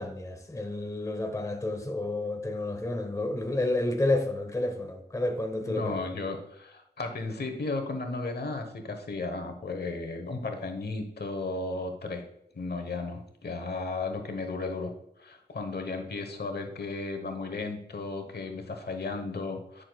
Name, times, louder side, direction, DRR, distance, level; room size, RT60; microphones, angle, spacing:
voice 1, 0.0-6.1, left 2 dB, 20° left, 0.9 m, -30 dB
voice 2, 5.6-12.2 12.5-14.9 15.2-19.8, left 3 dB, 65° left, 1.1 m, -34 dB
9.9 x 6.3 x 2.3 m
wide cardioid pair, 60°, 18 cm